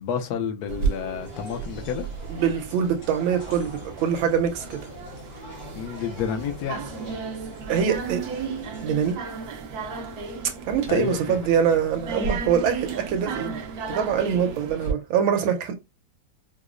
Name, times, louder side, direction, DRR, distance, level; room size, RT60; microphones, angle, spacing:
voice 1, 0.0-2.1 5.8-6.8 10.9-11.4, left 8 dB, 75° left, 0.9 m, -30 dB
sound 1, 0.7-14.9, right 5 dB, 70° right, 1.0 m, -34 dB
sound 2, 1.2-9.1, left 2 dB, 45° left, 0.8 m, -44 dB
voice 2, 2.3-4.8 7.7-8.2 8.8-9.2 10.4-13.6 13.9-15.7, right 8 dB, 85° right, 1.5 m, -24 dB
4.8 x 2.0 x 2.4 m
omnidirectional pair, 2.2 m